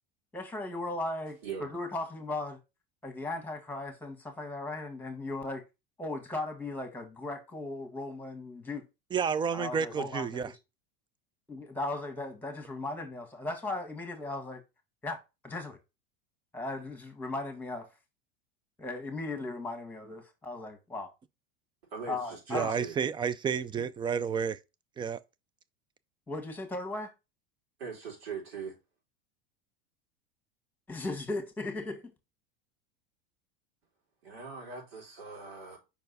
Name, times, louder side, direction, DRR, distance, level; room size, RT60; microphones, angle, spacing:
voice 1, 0.3-2.6 3.0-5.6 6.0-8.8 9.5-10.6 11.5-14.6 15.0-15.2 15.4-15.8 16.5-17.9 18.8-21.1 22.1-22.7 23.8-23.9 26.3-27.1 30.9-32.1, left 2 dB, 5° left, 1.6 m, -37 dB
voice 2, 9.1-10.5 22.5-24.6 25.0-25.2, right 7 dB, 15° right, 0.3 m, -30 dB
voice 3, 21.9-22.9 27.8-28.8 34.2-35.8, right 6 dB, 85° right, 4.1 m, -41 dB
5.3 x 4.5 x 4.0 m
supercardioid pair, 115°, 29 cm